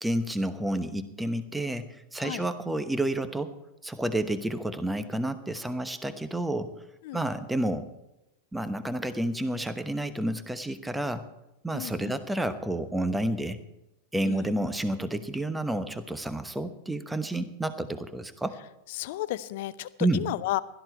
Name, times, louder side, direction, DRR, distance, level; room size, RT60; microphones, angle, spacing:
voice 1, 0.0-3.5 3.8-6.7 7.1-7.9 8.5-11.2 11.6-13.6 14.1-18.5 20.0-20.2, right 1 dB, 5° right, 11 dB, 1.0 m, -30 dB
voice 2, 11.7-12.2 14.2-14.5 18.9-20.6, left 15 dB, 50° left, 17 dB, 0.6 m, -33 dB
16.5 x 12.5 x 4.5 m, 0.92 s
figure-of-eight pair, 90°, 0 cm